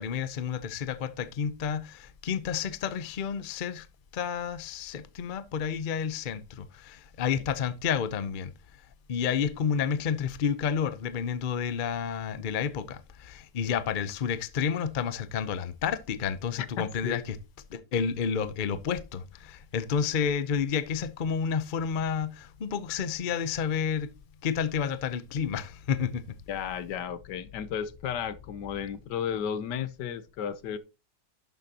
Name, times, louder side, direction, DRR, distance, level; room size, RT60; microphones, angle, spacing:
voice 1, 0.0-3.9 4.1-8.5 9.1-17.4 17.7-24.1 24.4-26.2, left 7 dB, 45° left, 0.6 m, -30 dB
voice 2, 16.6-17.2 26.5-30.8, left 8 dB, 80° left, 1.4 m, -33 dB
11.5 x 7.3 x 2.8 m
omnidirectional pair, 1.8 m